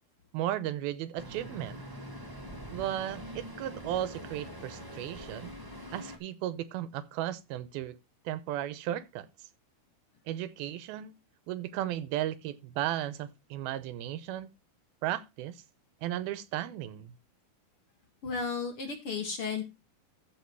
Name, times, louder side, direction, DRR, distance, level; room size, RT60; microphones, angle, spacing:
voice 1, 0.3-1.8 2.7-5.6 5.9-8.0 8.3-9.3 10.3-11.2 11.5-14.5 15.0-15.6 16.0-17.1, right 12 dB, 90° right, 2.7 m, -35 dB
Traffic noise roadway noise, 1.2-6.2, equal, 10° right, 1.1 m, -44 dB
voice 2, 18.2-19.6, left 5 dB, 50° left, 2.0 m, -33 dB
14.0 x 4.7 x 4.6 m
omnidirectional pair, 4.2 m